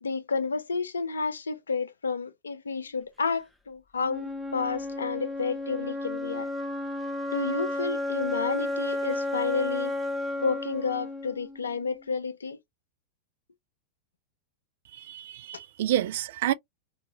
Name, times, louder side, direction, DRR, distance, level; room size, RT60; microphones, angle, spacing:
voice 1, 0.0-6.5 7.3-9.9 10.4-12.6, left 5 dB, 70° left, 0.4 m, -31 dB
Wind instrument woodwind instrument, 4.0-12.1, left 2 dB, ahead, 0.6 m, -32 dB
voice 2, 15.1-16.5, right 12 dB, 55° right, 0.3 m, -28 dB
2.8 x 2.3 x 2.6 m
figure-of-eight pair, 90°, 0 cm